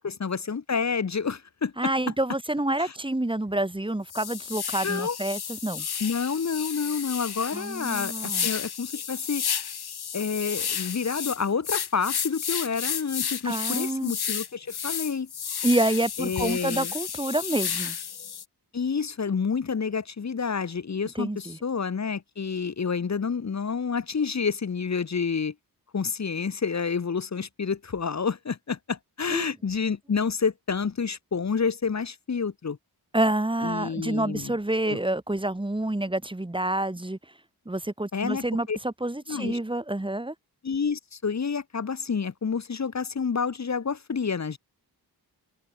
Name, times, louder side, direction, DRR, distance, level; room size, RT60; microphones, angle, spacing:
voice 1, 0.0-1.9 2.8-2.9 4.8-5.2 6.0-9.4 10.1-15.3 16.2-16.9 18.7-25.5 25.9-32.8 33.6-34.5 34.8-35.0 38.1-38.8 39.3-39.6 40.6-44.6, left 5 dB, 40° left, 1.0 m, -29 dB
voice 2, 1.8-5.9 7.5-8.5 13.4-14.2 15.6-18.0 21.1-21.6 29.3-29.4 33.1-37.2 37.6-40.3, right 1 dB, 10° right, 1.7 m, -28 dB
sound 1, 3.5-3.6 4.1-18.4, left 8 dB, 65° left, 1.2 m, -32 dB
wide cardioid pair, 110°, 41 cm